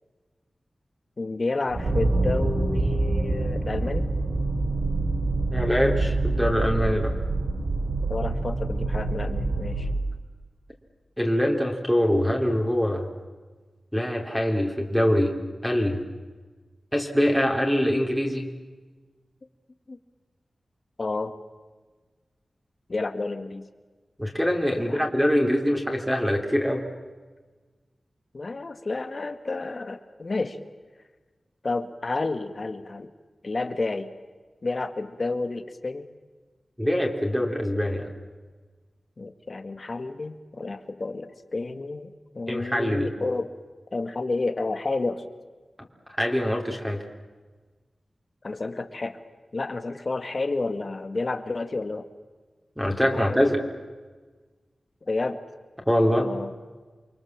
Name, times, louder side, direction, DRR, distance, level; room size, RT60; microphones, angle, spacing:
voice 1, 1.2-4.1 8.1-9.9 19.9-20.0 21.0-21.3 22.9-23.7 24.9-25.0 28.3-30.6 31.6-33.1 33.4-34.1 34.6-36.1 39.2-43.5 43.9-45.3 48.4-49.2 49.5-52.1 52.9-53.5 55.0-55.4 56.2-56.5, left 3 dB, 45° left, 9 dB, 1.9 m, -30 dB
sound 1, 1.7-10.0, right 2 dB, 75° right, 5.5 m, -26 dB
voice 2, 5.5-7.1 11.2-13.1 13.9-15.3 15.6-16.0 16.9-18.5 24.2-26.8 36.8-38.1 42.5-43.1 46.2-47.0 52.8-53.6 55.9-56.3, equal, ahead, 1 dB, 3.4 m, -24 dB
29.0 x 23.5 x 7.5 m, 1.3 s
wide cardioid pair, 100°, 0 cm